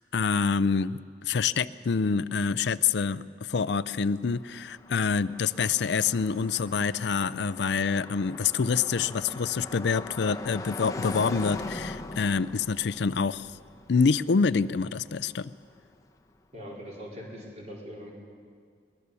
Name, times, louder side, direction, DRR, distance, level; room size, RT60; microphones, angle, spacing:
voice 1, 0.1-13.6 13.9-15.5, left 5 dB, 65° left, 16 dB, 0.5 m, -26 dB
Car passing by, 3.8-15.9, left 2 dB, 20° left, 0.8 m, -41 dB
voice 2, 16.5-18.1, equal, 35° right, -3 dB, 4.6 m, -41 dB
21.5 x 20.5 x 6.9 m, 2.1 s
head